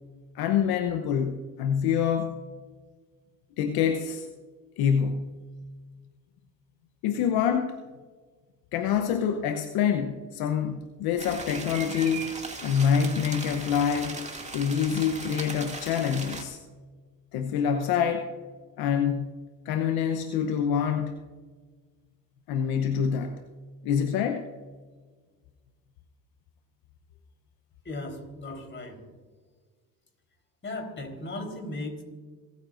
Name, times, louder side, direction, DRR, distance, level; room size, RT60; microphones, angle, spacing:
voice 1, 0.3-2.4 3.6-4.3 4.8-5.4 7.0-7.8 8.7-14.2 14.5-16.6 17.3-18.3 18.8-19.3 19.6-21.1 22.5-23.4 23.8-24.5, left 7 dB, 70° left, 6 dB, 0.9 m, -26 dB
sound 1, 11.2-16.4, right 3 dB, 20° right, 2.3 m, -38 dB
voice 2, 27.8-29.0 30.6-32.0, left 2 dB, 30° left, 3 dB, 3.9 m, -36 dB
27.5 x 9.5 x 2.6 m, 1.5 s
supercardioid pair, 70°, 38 cm